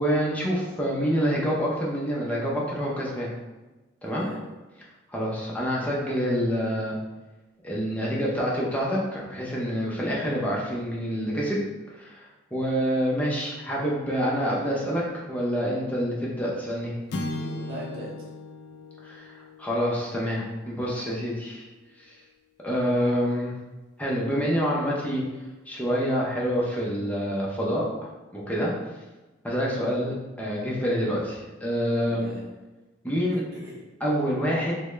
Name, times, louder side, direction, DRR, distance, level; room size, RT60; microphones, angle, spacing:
voice 1, 0.0-3.3 4.0-4.3 5.1-7.0 7.6-11.6 11.9-16.9 19.0-19.3 19.6-21.6 22.0-22.2 22.6-23.5 24.0-25.2 25.7-27.9 28.3-28.7 29.4-32.3 33.0-33.4 34.0-34.8, equal, 10° left, -5 dB, 0.6 m, -27 dB
voice 2, 4.0-4.4 17.2-18.3 32.1-32.5 33.5-33.8, equal, 50° right, -5 dB, 0.6 m, -39 dB
sound 1, 17.1-21.6, left 1 dB, 60° left, 0.4 m, -38 dB
3.5 x 2.1 x 3.2 m, 1.1 s
head